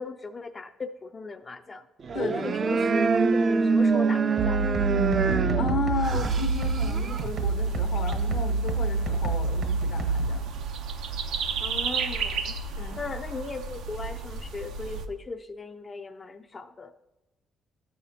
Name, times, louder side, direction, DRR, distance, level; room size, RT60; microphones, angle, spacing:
voice 1, 0.0-1.9 2.3-3.1 3.4-4.7 11.6-12.6 13.0-16.9, left 3 dB, 30° left, 6 dB, 0.4 m, -38 dB
sound 1, 2.0-7.3, right 4 dB, 45° right, 0.4 m, -25 dB
voice 2, 2.1-2.5 3.6-3.7 5.1-10.5 12.8-13.0, left 3 dB, 80° left, 4 dB, 1.1 m, -34 dB
sound 2, 4.4-10.4, right 3 dB, 65° right, 1.0 m, -27 dB
sound 3, 6.0-15.1, right 6 dB, 90° right, 0.6 m, -33 dB
13.0 x 5.6 x 2.7 m, 0.99 s
cardioid pair, 90°, 0 cm